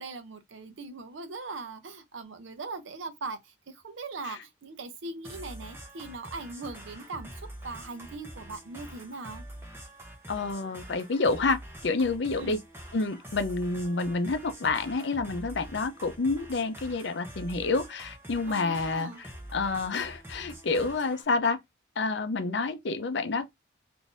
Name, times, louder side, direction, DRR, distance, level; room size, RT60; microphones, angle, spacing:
voice 1, 0.0-7.3 7.6-9.4 12.3-12.6 18.5-19.2, right 3 dB, 80° right, 0.6 m, -40 dB
sound 1, 5.2-21.2, right 1 dB, 10° right, 0.7 m, -45 dB
voice 2, 10.3-12.6 12.9-21.6 22.0-23.5, left 3 dB, 65° left, 0.6 m, -29 dB
3.7 x 2.6 x 2.5 m
head